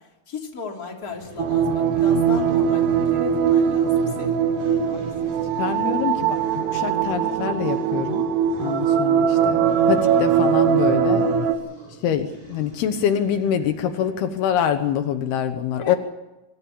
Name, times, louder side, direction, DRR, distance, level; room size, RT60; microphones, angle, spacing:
voice 1, 0.3-4.4 15.8-16.0, left 5 dB, 25° left, 0 dB, 3.3 m, -36 dB
sound 1, 1.0-14.9, right 3 dB, 35° right, 8.2 m, -42 dB
sound 2, 1.4-11.5, right 7 dB, 90° right, 3.7 m, -21 dB
voice 2, 5.6-8.2 8.6-9.6 9.9-11.3 12.0-16.0, left 9 dB, 75° left, 8 dB, 3.1 m, -25 dB
25.5 x 14.5 x 8.5 m, 0.99 s
omnidirectional pair, 4.6 m